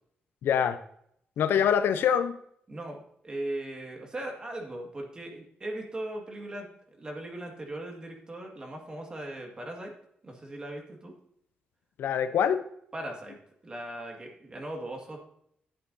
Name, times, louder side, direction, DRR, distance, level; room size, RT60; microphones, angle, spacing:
voice 1, 0.4-0.8 1.4-2.4 12.0-12.7, left 8 dB, 85° left, 11 dB, 0.6 m, -24 dB
voice 2, 2.7-6.7 7.0-9.9 10.2-11.1 12.9-13.4 13.6-15.2, right 1 dB, 25° right, 1 dB, 2.0 m, -38 dB
11.5 x 8.2 x 2.7 m, 0.70 s
wide cardioid pair, 150°, 4 cm